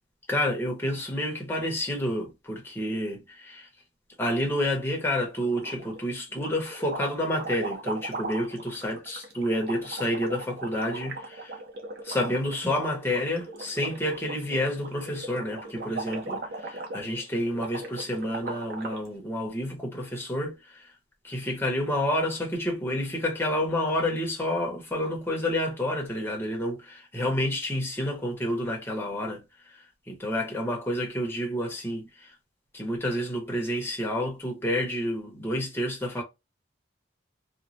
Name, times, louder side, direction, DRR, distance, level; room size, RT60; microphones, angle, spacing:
voice 1, 0.3-3.7 4.2-11.6 12.0-20.9 21.2-32.4 32.7-36.2, left 1 dB, 15° left, 0.8 m, -29 dB
sound 1, 5.4-6.0 6.3-19.1, right 2 dB, 60° right, 0.7 m, -39 dB
3.0 x 2.1 x 2.6 m
head